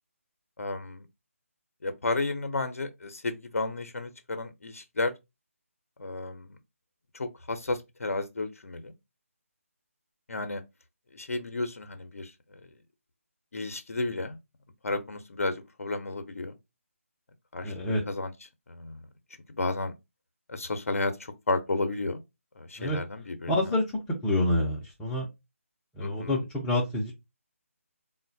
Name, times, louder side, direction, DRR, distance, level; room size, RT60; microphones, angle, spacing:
voice 1, 0.6-1.0 1.8-5.1 6.0-6.5 7.1-8.9 10.3-10.6 11.1-12.3 13.5-14.4 14.8-16.5 17.5-17.7 18.1-18.3 18.7-19.0 19.6-19.9 20.5-22.2 22.6-23.7 26.0-26.4, left 2 dB, 70° left, 0.5 m, -32 dB
voice 2, 17.6-18.0 22.8-23.0 23.5-23.8 24.2-25.3 26.0-27.1, left 1 dB, 10° left, 0.4 m, -27 dB
3.7 x 2.1 x 2.6 m
figure-of-eight pair, 155°, 8 cm